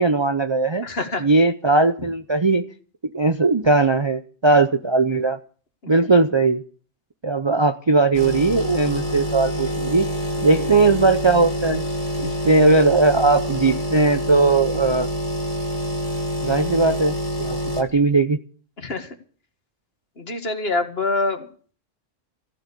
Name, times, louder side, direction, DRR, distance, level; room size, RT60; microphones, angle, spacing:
voice 1, 0.0-0.9 1.2-2.6 3.1-5.4 5.9-6.6 7.2-10.1 10.4-11.8 12.2-15.1 16.4-18.4, right 3 dB, 30° right, 9 dB, 0.5 m, -18 dB
voice 2, 0.8-1.3 5.8-5.9 10.4-10.7 18.8-19.2 20.2-21.5, left 3 dB, 55° left, 7 dB, 2.0 m, -26 dB
sound 1, 8.1-17.8, equal, 30° left, 2.0 m, -27 dB
15.0 x 7.8 x 8.4 m, 0.43 s
omnidirectional pair, 1.3 m